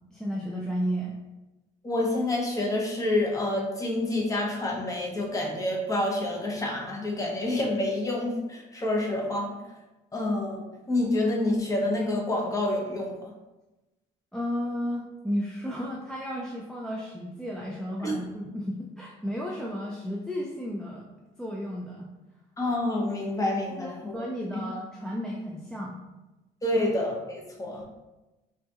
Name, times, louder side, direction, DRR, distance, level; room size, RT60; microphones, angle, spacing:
voice 1, 0.1-1.2 14.3-22.1 23.8-26.0, equal, 5° left, -3 dB, 0.3 m, -33 dB
voice 2, 1.8-9.6 10.1-13.3 18.0-18.1 22.6-24.2 26.6-27.8, left 1 dB, 20° left, -1 dB, 0.7 m, -28 dB
3.8 x 2.3 x 2.8 m, 1.1 s
cardioid pair, 110°, 17 cm